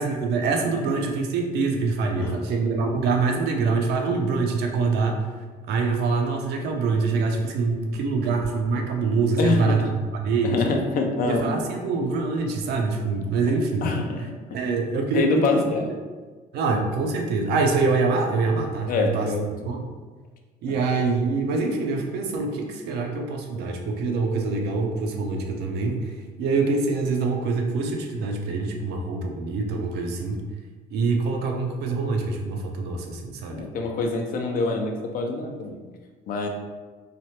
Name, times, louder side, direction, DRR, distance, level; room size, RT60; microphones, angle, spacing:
voice 1, 0.0-5.2 5.7-10.7 11.2-13.9 14.5-15.9 16.5-19.3 19.7-19.9 20.6-30.4 30.9-33.7, right 4 dB, 75° right, 2 dB, 0.5 m, -25 dB
voice 2, 9.4-9.8 10.4-11.6 13.8-14.2 15.1-15.9 16.7-16.8 18.9-19.7 20.7-20.8 33.5-35.8 36.3-36.5, left 3 dB, 55° left, 3 dB, 0.5 m, -25 dB
3.3 x 2.1 x 2.7 m, 1.4 s
cardioid pair, 110°, 17 cm